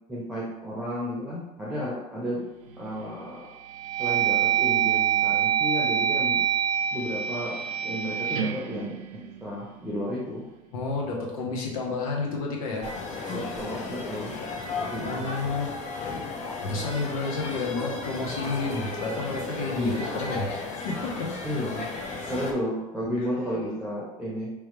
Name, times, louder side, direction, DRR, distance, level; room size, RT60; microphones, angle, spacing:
voice 1, 0.1-2.5 2.8-3.5 4.0-6.4 6.9-10.4 13.3-14.4 14.8-15.3 19.7-20.1 21.4-21.9 22.3-24.5, equal, 5° right, -5 dB, 0.9 m, -33 dB
sound 1, 2.6-3.1 3.6-9.8, right 9 dB, 80° right, 0.5 m, -26 dB
voice 2, 10.7-12.9 15.0-15.7 16.6-21.3, left 3 dB, 85° left, -1 dB, 1.1 m, -30 dB
sound 2, 12.8-22.5, left 3 dB, 40° left, 0.8 m, -34 dB
3.5 x 3.2 x 3.1 m, 1.1 s
supercardioid pair, 95°, 18 cm